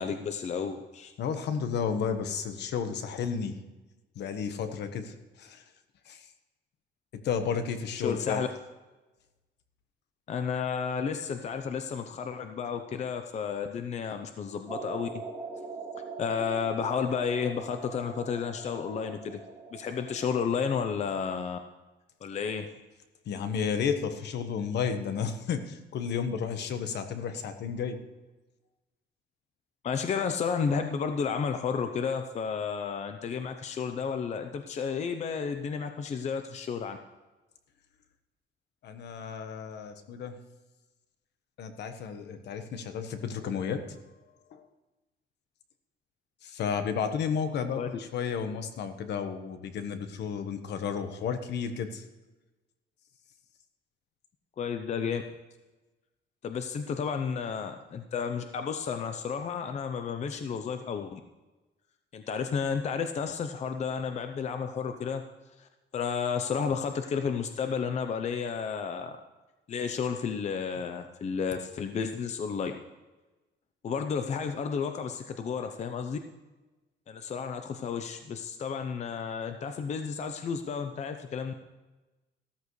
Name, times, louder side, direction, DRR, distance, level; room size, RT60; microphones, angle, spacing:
voice 1, 0.0-1.1 8.0-8.5 10.3-15.1 16.2-19.4 19.7-21.6 22.2-22.7 29.8-37.0 47.8-47.9 54.6-55.2 56.4-61.2 62.1-65.2 65.6-69.2 69.7-72.8 73.8-76.2 77.1-81.5, left 6 dB, 35° left, 7 dB, 0.7 m, -32 dB
voice 2, 1.2-3.6 4.1-5.6 6.1-6.2 7.1-8.4 23.3-28.0 38.8-40.4 41.6-44.0 44.5-44.7 46.4-52.0, left 6 dB, 65° left, 8 dB, 1.3 m, -32 dB
sound 1, 14.7-20.6, right 4 dB, 10° right, 1.2 m, -42 dB
14.5 x 13.5 x 3.2 m, 1.1 s
cardioid pair, 150°, 19 cm